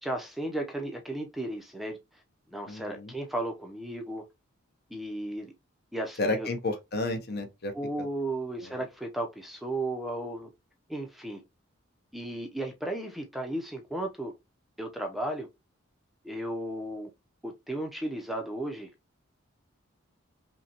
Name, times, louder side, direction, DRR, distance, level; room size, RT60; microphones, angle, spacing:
voice 1, 0.0-2.0 2.5-4.2 4.9-5.5 5.9-6.5 7.7-10.5 10.9-11.4 12.1-14.3 14.8-15.5 16.2-17.1 17.4-18.9, right 1 dB, ahead, 0.5 m, -34 dB
voice 2, 2.7-3.1 6.2-7.7 8.0-8.1 8.6-8.7, left 2 dB, 50° left, 0.7 m, -31 dB
5.4 x 2.2 x 2.8 m
head